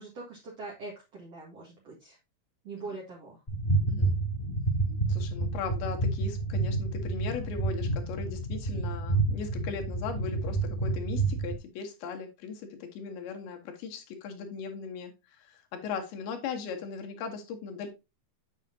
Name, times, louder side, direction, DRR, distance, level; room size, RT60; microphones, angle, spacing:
voice 1, 0.0-2.2 2.6-3.4, right 3 dB, 50° right, -4 dB, 2.3 m, -43 dB
sound 1, 3.5-11.5, right 3 dB, 10° left, 1.7 m, -29 dB
voice 2, 5.1-17.9, left 6 dB, 75° left, 4 dB, 3.1 m, -38 dB
7.6 x 6.4 x 2.7 m, 0.25 s
omnidirectional pair, 4.5 m